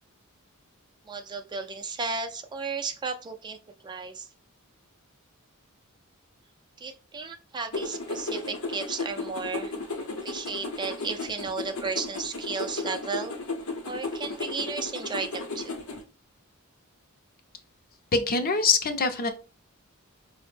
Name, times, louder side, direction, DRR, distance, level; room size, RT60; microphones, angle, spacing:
voice 1, 1.1-3.6 3.8-4.3 6.8-9.7 10.2-13.3 13.9-15.8, right 4 dB, 20° right, 6 dB, 0.3 m, -34 dB
sound 1, 7.7-16.0, left 3 dB, 75° left, 0.8 m, -35 dB
voice 2, 18.1-19.3, left 4 dB, 45° left, 7 dB, 0.5 m, -24 dB
4.9 x 2.0 x 3.2 m, 0.34 s
head